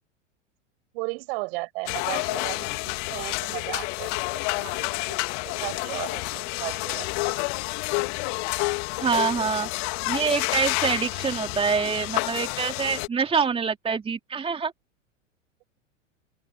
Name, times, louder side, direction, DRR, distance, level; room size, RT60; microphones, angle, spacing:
voice 1, 0.9-7.1, right 28 dB, 50° right, 6.1 m, -36 dB
sound 1, 1.9-13.1, left 35 dB, 45° left, 2.8 m, -29 dB
voice 2, 9.0-9.7 10.1-14.7, right 6 dB, 15° right, 3.0 m, -25 dB
open air
figure-of-eight pair, 95°, 38 cm